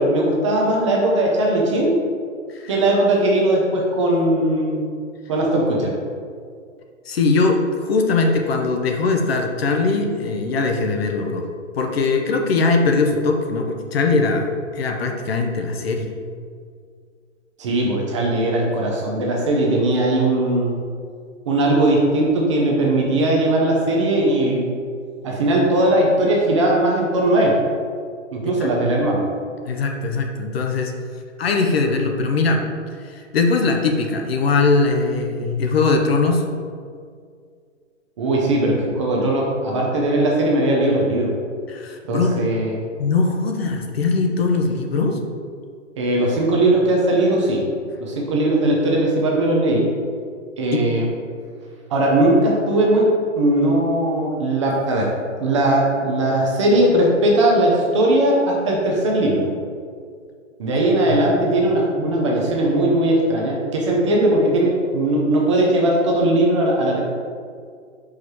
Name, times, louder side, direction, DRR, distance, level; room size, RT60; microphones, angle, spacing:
voice 1, 0.0-2.0 2.7-4.9 5.3-5.9 17.6-20.7 21.5-24.7 25.2-27.6 28.3-29.2 38.2-41.3 42.1-42.8 46.0-47.6 48.0-49.9 50.6-51.1 51.9-53.1 53.3-55.1 55.4-59.5 60.6-67.0, right 1 dB, 25° right, -2 dB, 0.6 m, -19 dB
voice 2, 7.1-11.4 11.8-14.5 14.7-16.1 29.7-31.0 31.4-32.6 33.0-36.4 41.7-42.5 43.0-45.2 50.7-50.8 61.1-61.2, left 3 dB, 50° left, 3 dB, 0.8 m, -20 dB
4.9 x 4.1 x 4.7 m, 2.1 s
hypercardioid pair, 160°, 38 cm